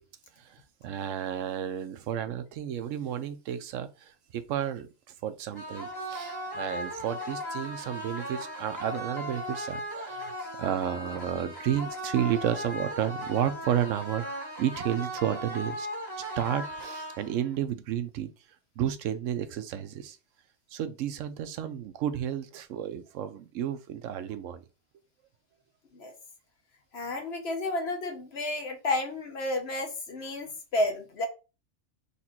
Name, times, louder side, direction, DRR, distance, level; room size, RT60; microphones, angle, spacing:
voice 1, 0.4-4.9 5.2-14.2 14.6-15.9 16.3-18.3 18.8-20.2 20.7-24.6, right 10 dB, 85° right, 1.0 m, -32 dB
sound 1, 5.5-17.5, equal, 20° left, 1.6 m, -37 dB
voice 2, 26.9-31.3, left 2 dB, 60° left, 1.1 m, -31 dB
4.2 x 2.5 x 4.2 m
omnidirectional pair, 1.3 m